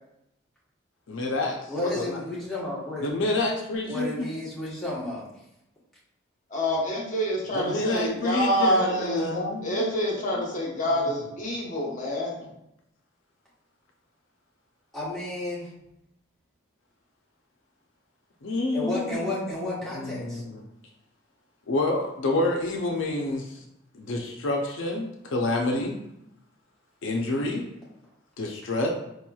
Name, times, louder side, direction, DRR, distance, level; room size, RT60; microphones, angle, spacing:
voice 1, 1.1-1.7 2.1-2.2 3.0-4.3 7.5-10.0 10.3-10.4 18.4-20.6 21.7-23.6 23.9-26.0 27.0-27.6 28.4-28.9, left 2 dB, 75° left, 1 dB, 0.5 m, -28 dB
voice 2, 1.7-3.1 3.9-5.4 14.9-15.7 18.7-20.4, left 2 dB, ahead, -9 dB, 1.1 m, -32 dB
voice 3, 6.5-12.5, equal, 40° left, -3 dB, 0.9 m, -27 dB
4.7 x 2.9 x 2.3 m, 0.84 s
head